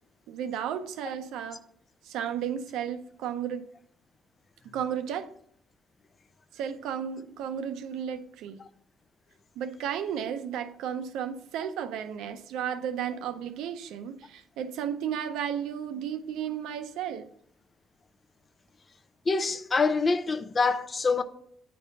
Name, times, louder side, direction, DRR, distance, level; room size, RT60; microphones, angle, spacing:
voice 1, 0.3-1.6 2.0-3.7 4.7-5.3 6.5-8.6 9.6-17.3, right 8 dB, 75° right, 0.5 m, -33 dB
voice 2, 19.3-21.2, left 4 dB, 40° left, 0.7 m, -25 dB
9.2 x 3.3 x 5.4 m
hypercardioid pair, 45°, 0 cm